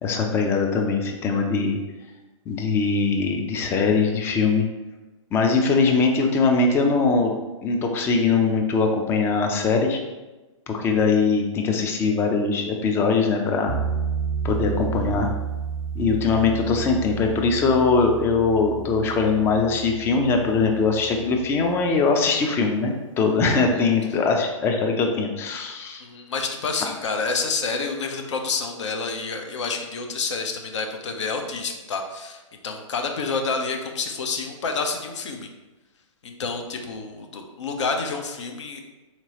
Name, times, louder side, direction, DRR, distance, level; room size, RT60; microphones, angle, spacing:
voice 1, 0.0-1.8 2.5-4.6 5.3-7.3 7.6-10.0 10.7-13.8 14.4-15.3 16.0-26.0, left 4 dB, 15° left, 3 dB, 0.4 m, -21 dB
sound 1, 13.7-21.8, right 6 dB, 75° right, 0.5 m, -31 dB
voice 2, 26.0-35.5 36.2-38.8, left 4 dB, 65° left, 4 dB, 0.6 m, -28 dB
3.9 x 2.9 x 2.8 m, 1.1 s
hypercardioid pair, 125°, 17 cm